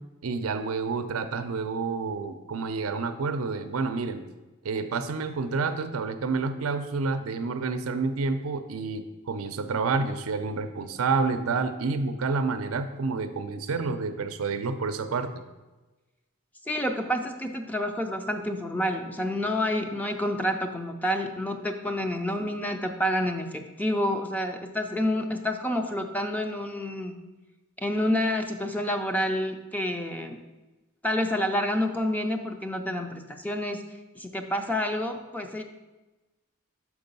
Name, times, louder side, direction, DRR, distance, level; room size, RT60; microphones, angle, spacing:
voice 1, 0.2-4.2 4.6-15.3, right 4 dB, 85° right, 9 dB, 0.5 m, -29 dB
voice 2, 16.7-27.2 27.8-30.4 31.0-33.8 34.2-35.6, left 1 dB, 10° left, 5 dB, 0.4 m, -28 dB
6.1 x 4.9 x 5.3 m, 1.1 s
head